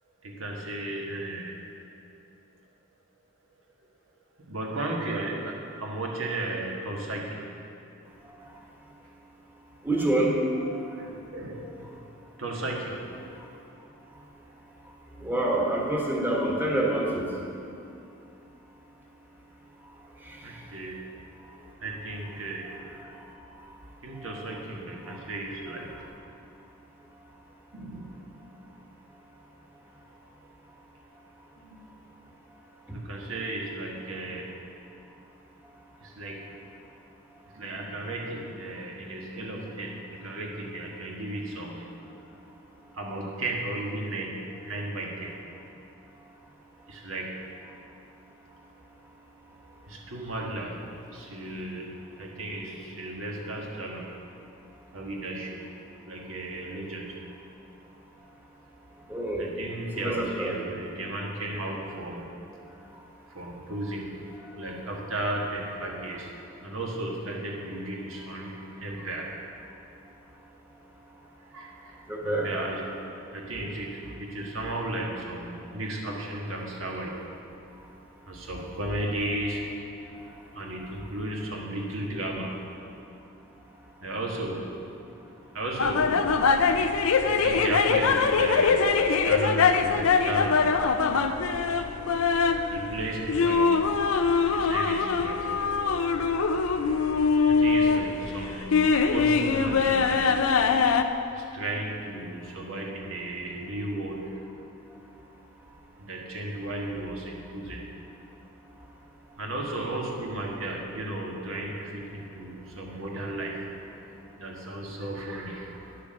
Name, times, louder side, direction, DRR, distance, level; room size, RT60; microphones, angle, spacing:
voice 1, 0.2-1.6 4.5-7.4 11.0-11.6 12.4-13.0 20.4-20.9 21.8-22.7 24.0-25.9 27.7-28.1 31.6-31.8 32.9-34.5 36.0-36.4 37.5-42.0 42.9-45.3 46.9-47.3 49.9-50.8 51.1-54.1 54.9-55.7 56.1-57.1 59.4-62.2 63.3-64.1 64.5-66.3 66.6-69.3 71.5-72.9 73.3-77.1 78.3-79.7 80.5-82.6 84.0-84.7 85.5-86.3 87.3-88.8 89.0-90.6 92.7-93.7 94.5-95.5 97.5-100.2 101.4-104.5 106.0-107.8 109.4-113.7 114.4-115.7, right 1 dB, 70° right, -1 dB, 1.7 m, -34 dB
voice 2, 9.8-10.3 10.9-11.0 15.2-17.2 20.3-20.4 25.1-25.2 59.1-59.5 60.0-60.7 72.1-72.5, right 1 dB, 10° right, -2 dB, 1.4 m, -27 dB
sound 1, 85.8-101.0, left 5 dB, 80° left, 0.6 m, -23 dB
10.5 x 6.7 x 6.4 m, 2.7 s
head